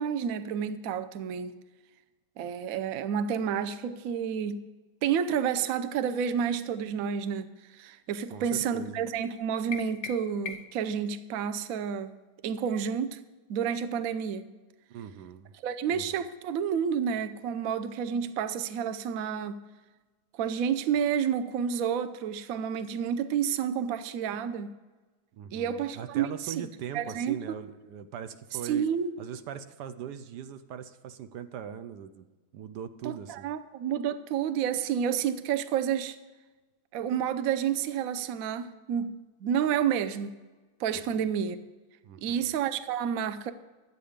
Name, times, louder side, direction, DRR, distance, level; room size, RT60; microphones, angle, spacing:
voice 1, 0.0-1.5 2.4-4.6 5.0-12.1 12.4-13.2 13.5-14.5 15.6-19.5 20.3-24.7 25.5-26.5 26.9-27.4 28.6-29.1 33.0-36.2 36.9-39.1 39.4-40.3 40.8-41.6 42.2-43.5, right 8 dB, 65° right, 11 dB, 1.0 m, -30 dB
voice 2, 8.3-9.0 14.9-15.5 15.9-16.2 25.3-28.9 29.2-32.3 32.5-33.5 40.9-41.3 42.0-42.5, right 8 dB, 85° right, 11 dB, 1.3 m, -41 dB
sound 1, 9.7-10.9, left 6 dB, 70° left, 0.9 m, -40 dB
12.0 x 8.3 x 5.1 m, 1.2 s
omnidirectional pair, 1.8 m